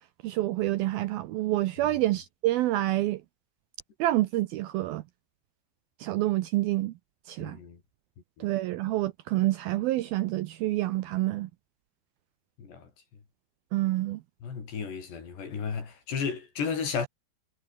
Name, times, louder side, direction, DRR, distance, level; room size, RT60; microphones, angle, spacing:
voice 1, 0.2-3.2 4.0-5.0 6.0-6.9 7.3-7.6 8.4-11.5 13.7-14.2, right 16 dB, 75° right, 2.2 m, -27 dB
voice 2, 7.4-7.8 8.4-8.5 12.6-12.9 14.4-17.1, left 6 dB, 70° left, 7.2 m, -33 dB
omnidirectional pair, 5.0 m